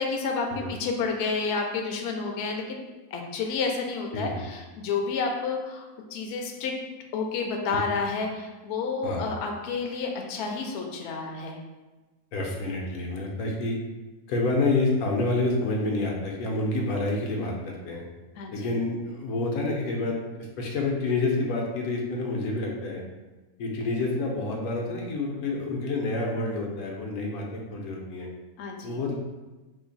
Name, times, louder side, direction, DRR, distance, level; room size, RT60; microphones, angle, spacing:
voice 1, 0.0-2.8 3.1-6.7 7.1-11.6 18.4-18.7 28.6-29.0, left 4 dB, 65° left, 2 dB, 0.7 m, -30 dB
voice 2, 4.1-4.4 7.7-7.8 9.0-9.3 12.3-13.8 14.3-18.0 18.5-23.0 23.6-28.3 28.8-29.1, left 2 dB, 85° left, -1 dB, 1.1 m, -28 dB
2.8 x 2.5 x 3.9 m, 1.2 s
omnidirectional pair, 1.5 m